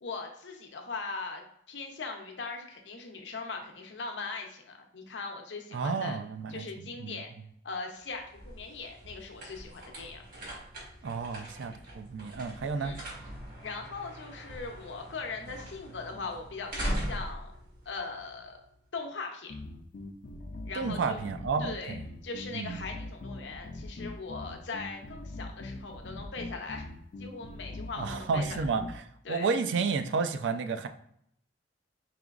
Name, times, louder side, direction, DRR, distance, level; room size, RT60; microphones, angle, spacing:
voice 1, 0.0-6.2 6.5-7.3 7.6-10.2 12.8-13.0 13.6-17.5 17.9-18.6 18.9-19.5 20.7-21.2 21.6-21.9 22.2-26.8 27.2-28.7 29.2-29.5, left 4 dB, 75° left, 2 dB, 0.7 m, -40 dB
voice 2, 5.7-7.2 11.0-12.9 20.7-22.0 22.5-22.8 28.0-30.9, right 4 dB, 80° right, 8 dB, 0.4 m, -31 dB
sound 1, 8.0-18.7, equal, 50° right, 1.4 m, -41 dB
sound 2, 19.5-29.0, left 2 dB, 45° left, 0.4 m, -42 dB
4.9 x 2.9 x 2.4 m, 0.69 s
head